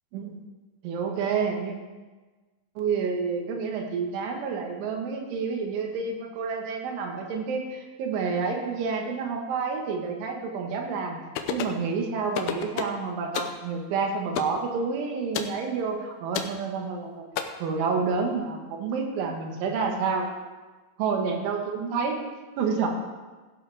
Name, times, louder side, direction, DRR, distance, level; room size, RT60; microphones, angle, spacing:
voice 1, 0.8-1.8 2.8-11.2 11.5-17.3 17.6-20.3 21.0-22.2 22.6-22.9, right 5 dB, 85° right, 2 dB, 4.0 m, -29 dB
sound 1, 11.4-11.8 12.3-13.0 13.3-13.6 14.4-14.6 15.3-15.6 16.3-16.6 17.4-17.5, left 9 dB, 90° left, 2.1 m, -30 dB
16.0 x 11.0 x 3.5 m, 1.3 s
omnidirectional pair, 5.3 m